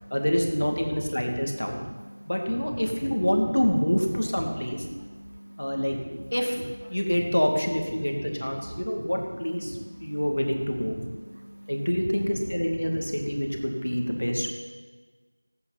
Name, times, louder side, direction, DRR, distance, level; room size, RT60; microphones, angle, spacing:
voice 1, 0.1-1.8 2.3-4.8 5.6-6.0 6.3-6.6 6.9-11.0 11.7-14.5, equal, 60° left, 2.1 m, -27 dB
voice 2, 1.8-2.3 4.9-6.2 8.0-8.1 8.5-9.1 9.7-10.1 10.9-11.7, equal, 70° right, 0.5 m, -41 dB
17.5 x 8.6 x 4.0 m
figure-of-eight pair, 180°, 0 cm